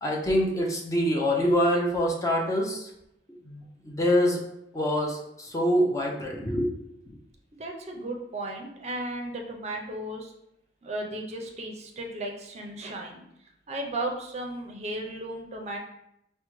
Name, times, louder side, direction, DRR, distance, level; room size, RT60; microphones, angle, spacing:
voice 1, 0.0-2.9 3.4-4.4 4.7-6.7, equal, 20° left, -2 dB, 0.5 m, -25 dB
voice 2, 7.6-10.3 10.8-13.2 13.7-15.8, right 1 dB, 35° right, 1 dB, 0.5 m, -35 dB
4.7 x 2.1 x 3.0 m, 0.80 s
head